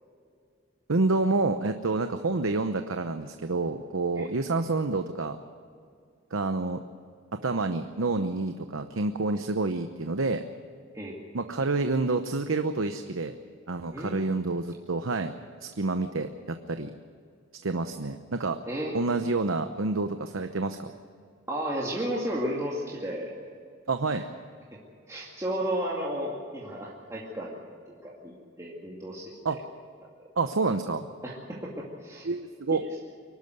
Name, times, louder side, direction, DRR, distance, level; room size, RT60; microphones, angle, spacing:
voice 1, 0.9-5.4 6.3-6.8 7.4-10.4 11.3-13.3 13.7-15.3 15.6-16.9 17.6-18.6 18.9-20.9 23.9-24.3 29.4-29.6 30.4-31.1 32.2-32.8, right 3 dB, 90° right, 8 dB, 0.9 m, -28 dB
voice 2, 13.9-14.2 18.7-19.0 21.5-23.3 25.1-27.6 28.0-29.6 31.2-32.3, right 1 dB, 15° right, -4 dB, 2.4 m, -33 dB
24.0 x 12.0 x 9.5 m, 2.2 s
head